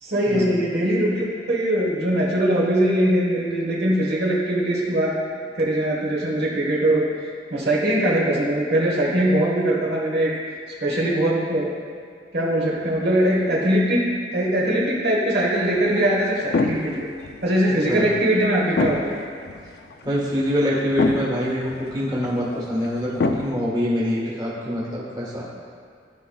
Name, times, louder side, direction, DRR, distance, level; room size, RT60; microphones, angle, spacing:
voice 1, 0.0-5.1 5.5-7.0 7.5-10.3 10.8-11.8 12.3-14.1 14.3-17.1 17.4-19.1, right 1 dB, 65° right, -4 dB, 1.2 m, -21 dB
sound 1, 15.5-23.5, left 3 dB, 60° left, 0.4 m, -29 dB
voice 2, 20.0-25.5, equal, 25° right, -6 dB, 1.5 m, -25 dB
13.5 x 4.9 x 2.3 m, 2.1 s
head